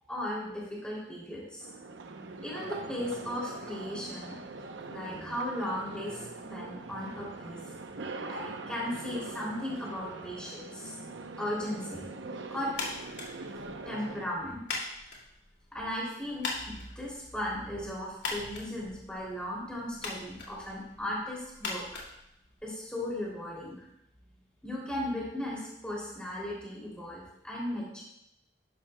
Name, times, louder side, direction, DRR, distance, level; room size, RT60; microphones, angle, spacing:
voice 1, 0.1-1.7 2.4-4.4 4.9-6.2 6.5-7.6 8.3-10.9 11.4-12.1 12.5-12.7 13.8-14.8 15.7-21.8 22.6-23.9 24.6-28.0, left 1 dB, 5° left, -5 dB, 2.8 m, -36 dB
sound 1, 1.6-14.3, right 3 dB, 90° right, 0.7 m, -42 dB
sound 2, 12.7-22.9, left 3 dB, 70° left, 2.3 m, -42 dB
11.0 x 11.0 x 2.2 m, 0.81 s
head